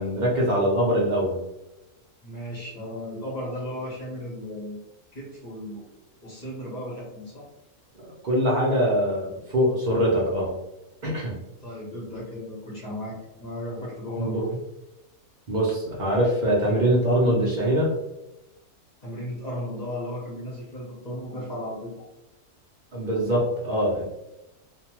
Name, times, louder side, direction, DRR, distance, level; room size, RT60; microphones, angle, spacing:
voice 1, 0.0-1.4 8.2-10.5 11.0-11.3 14.2-14.4 15.5-17.9 22.9-24.0, equal, 60° right, -5 dB, 0.5 m, -23 dB
voice 2, 2.2-4.8 5.1-5.9 6.2-7.4 11.6-14.5 19.0-21.9, left 1 dB, 35° left, -5 dB, 0.7 m, -35 dB
2.6 x 2.2 x 2.9 m, 0.95 s
omnidirectional pair, 1.6 m